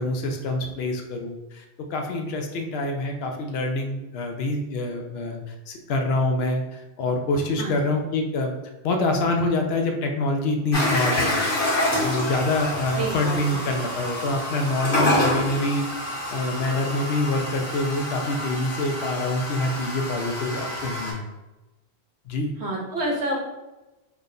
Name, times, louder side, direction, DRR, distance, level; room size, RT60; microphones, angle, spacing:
voice 1, 0.0-1.6 1.9-8.5 8.8-11.5 12.0-15.9 16.3-21.2 22.3-22.5, left 2 dB, 75° left, 4 dB, 0.8 m, -26 dB
sound 1, 10.7-21.1, left 1 dB, 55° left, 1.3 m, -27 dB
voice 2, 12.9-13.6 22.6-23.3, right 1 dB, 90° right, -1 dB, 1.1 m, -28 dB
3.4 x 2.2 x 3.7 m, 1.0 s
omnidirectional pair, 1.1 m